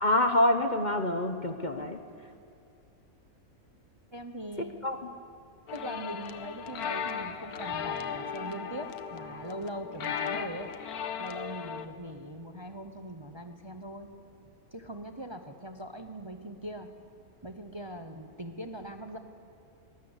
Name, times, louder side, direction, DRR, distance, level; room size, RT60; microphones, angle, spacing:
voice 1, 0.0-2.0 4.8-5.0, left 1 dB, 35° left, 6 dB, 1.0 m, -26 dB
voice 2, 4.1-4.7 5.7-10.7 11.2-14.1 14.7-16.9 17.4-19.2, right 1 dB, 20° right, 6 dB, 0.9 m, -41 dB
sound 1, 5.7-11.9, left 7 dB, 90° left, 1.5 m, -36 dB
22.5 x 19.5 x 8.1 m, 2.5 s
omnidirectional pair, 1.5 m